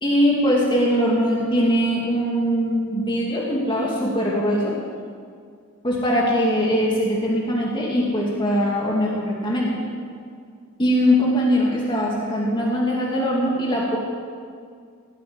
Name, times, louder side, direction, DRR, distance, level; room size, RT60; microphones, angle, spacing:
voice 1, 0.0-4.7 5.8-9.8 10.8-14.0, equal, 20° left, -4 dB, 2.5 m, -21 dB
17.0 x 8.4 x 9.8 m, 2.1 s
head